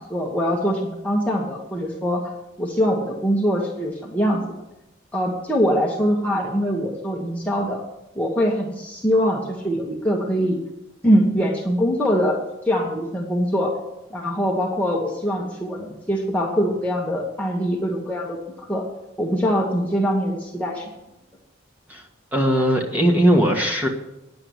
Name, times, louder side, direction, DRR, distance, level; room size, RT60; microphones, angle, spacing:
voice 1, 0.0-2.3 2.6-4.4 5.1-7.8 8.1-10.6 11.0-12.4 12.6-13.7 14.1-18.8 19.2-20.9, equal, 10° left, -3 dB, 1.3 m, -23 dB
voice 2, 22.3-23.9, equal, 10° right, -1 dB, 1.6 m, -19 dB
10.0 x 7.7 x 9.3 m, 0.93 s
head